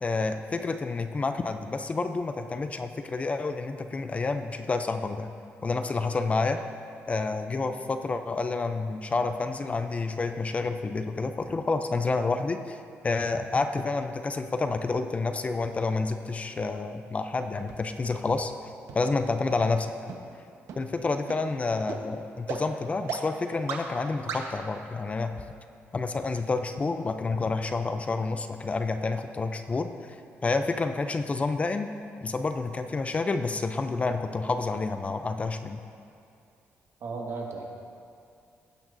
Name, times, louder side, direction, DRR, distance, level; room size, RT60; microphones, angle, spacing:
voice 1, 0.0-5.3 5.6-6.6 7.1-12.8 13.0-18.5 18.9-20.1 20.8-25.3 25.9-29.9 30.4-31.9 32.2-35.8, left 3 dB, 25° left, 8 dB, 0.5 m, -29 dB
Synth Bubbles, 17.7-17.8 18.3-18.4 18.9-19.0 19.5-19.6 20.1-20.2 20.7-20.8 21.3-21.4 21.9-22.0 22.5-22.6 23.1-23.2 23.7-23.8 24.3-24.4, right 7 dB, 80° right, 1.1 m, -34 dB
voice 2, 37.0-37.6, right 4 dB, 60° right, -1 dB, 1.7 m, -35 dB
18.5 x 9.1 x 2.6 m, 2.5 s
cardioid pair, 115°, 5 cm